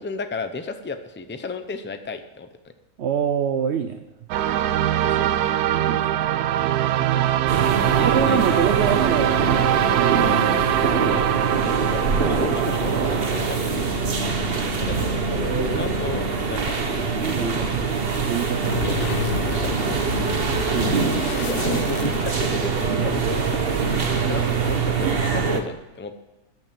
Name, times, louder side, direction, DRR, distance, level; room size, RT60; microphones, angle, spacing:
voice 1, 0.0-2.5 5.0-5.3 7.0-7.5 7.9-8.6 11.3-13.9 14.8-16.8 18.6-19.2 19.5-20.0 21.0-26.1, left 3 dB, 15° left, 8 dB, 0.4 m, -33 dB
voice 2, 3.0-4.0 5.7-6.1 8.0-9.5 9.9-10.4 16.4-16.6 17.1-17.9 18.2-18.8 20.7-20.9, right 8 dB, 60° right, 8 dB, 0.8 m, -26 dB
sound 1, 4.3-13.6, right 12 dB, 80° right, 1.1 m, -22 dB
sound 2, 7.5-25.6, right 4 dB, 40° right, 1.1 m, -24 dB
sound 3, 18.5-22.7, left 9 dB, 60° left, 0.6 m, -31 dB
14.5 x 6.0 x 8.8 m, 1.0 s
omnidirectional pair, 1.6 m